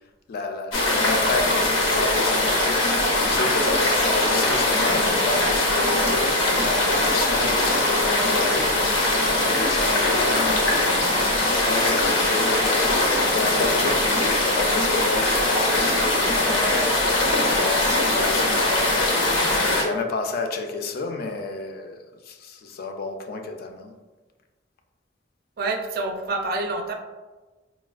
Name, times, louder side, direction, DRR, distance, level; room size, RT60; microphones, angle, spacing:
voice 1, 0.3-6.3 6.6-11.0 11.6-23.9, left 3 dB, 50° left, 5 dB, 0.3 m, -31 dB
sound 1, 0.7-19.8, left 1 dB, 90° left, 0.6 m, -21 dB
voice 2, 25.6-26.9, right 2 dB, 50° right, 4 dB, 0.4 m, -27 dB
4.0 x 2.2 x 2.3 m, 1.2 s
head